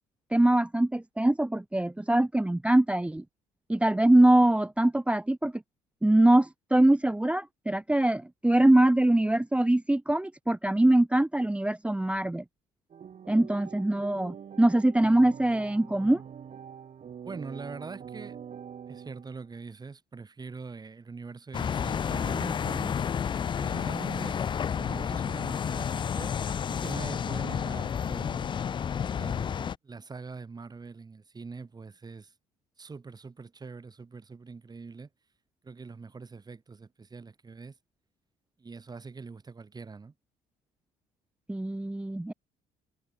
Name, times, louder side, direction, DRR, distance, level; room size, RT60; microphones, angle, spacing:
voice 1, 0.3-3.2 3.7-5.6 6.0-12.4 13.3-16.2 41.5-42.3, right 1 dB, 5° right, 1.0 m, -23 dB
sound 1, 12.9-19.6, right 8 dB, 45° right, 4.1 m, -45 dB
voice 2, 17.2-18.4 18.9-22.9 23.6-24.5 24.7-26.3 26.7-28.5 29.1-32.3 32.8-35.1 35.6-37.7 38.6-40.1, right 4 dB, 25° right, 2.7 m, -43 dB
sound 2, 21.5-29.8, left 7 dB, 30° left, 0.4 m, -31 dB
cardioid pair, 110°, 17 cm